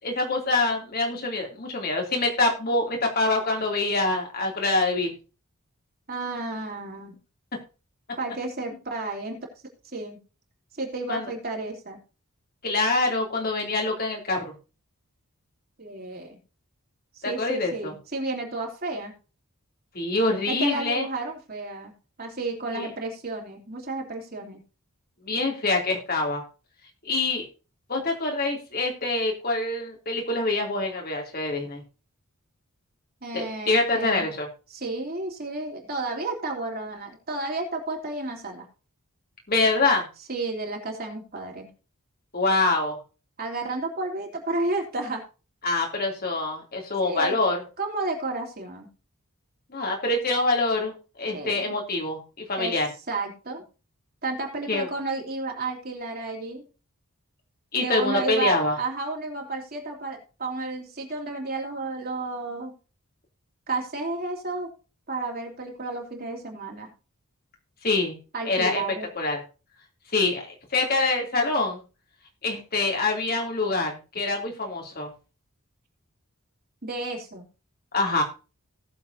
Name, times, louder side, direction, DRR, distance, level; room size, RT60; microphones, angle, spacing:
voice 1, 0.0-5.1 11.1-11.3 12.6-14.5 17.2-17.9 19.9-21.1 22.7-22.9 25.2-26.4 27.0-27.5 27.9-31.8 33.3-34.5 39.5-40.1 42.3-43.0 45.6-47.6 49.7-52.2 52.5-52.9 54.7-54.9 57.7-58.8 67.8-68.2 68.4-68.8 69.1-69.4 70.1-70.5 70.7-71.8 72.4-75.1 77.9-78.2, left 2 dB, 45° left, 1 dB, 2.9 m, -25 dB
voice 2, 6.1-7.2 8.2-9.4 9.9-10.2 10.7-12.0 15.8-16.4 17.2-19.1 20.5-21.9 22.2-24.6 33.2-34.3 34.7-38.7 40.3-41.7 43.4-45.2 47.0-47.4 47.8-48.9 51.3-51.8 52.6-52.8 53.1-53.6 54.2-56.6 57.8-62.7 63.7-64.7 65.1-66.9 68.3-69.1 76.8-77.4, right 2 dB, 40° right, 1 dB, 3.2 m, -32 dB
18.5 x 7.4 x 2.7 m, 0.33 s
head